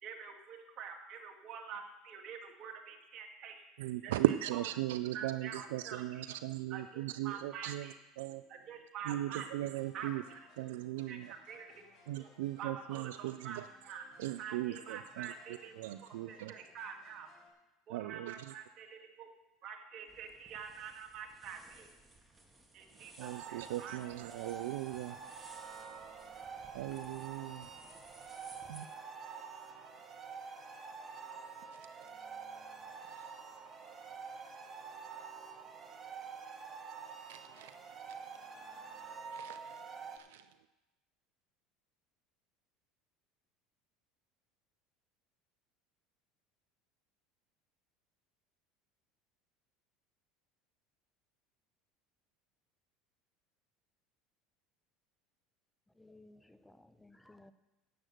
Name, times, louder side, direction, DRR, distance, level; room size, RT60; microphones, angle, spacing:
voice 1, 0.0-3.6 4.0-4.1 5.1-6.3 6.7-8.0 8.5-9.5 9.9-10.4 11.1-11.8 12.2-12.3 12.6-14.0 14.4-15.7 16.3-17.3 17.9-19.3 19.6-21.9 22.7-24.0, right 7 dB, 55° right, 3 dB, 2.1 m, -47 dB
voice 2, 3.8-8.4 9.0-10.2 10.6-11.3 12.1-13.7 14.2-16.5 17.9-18.5 23.2-25.2 26.7-27.7 28.7-28.9 31.7-31.9 33.0-33.4 37.3-37.8 38.0-38.2 39.3-39.8 40.1-40.5, right 15 dB, 80° right, 13 dB, 0.4 m, -38 dB
sound 1, 9.8-17.5, left 4 dB, 55° left, 3.4 m, -64 dB
sound 2, 20.1-28.9, right 2 dB, 15° right, 2.0 m, -60 dB
sound 3, 23.2-40.2, right 5 dB, 30° right, 1.8 m, -48 dB
voice 3, 55.9-57.5, left 2 dB, 5° left, 11 dB, 0.7 m, -59 dB
10.5 x 7.8 x 7.7 m, 1.0 s
hypercardioid pair, 80°, 0 cm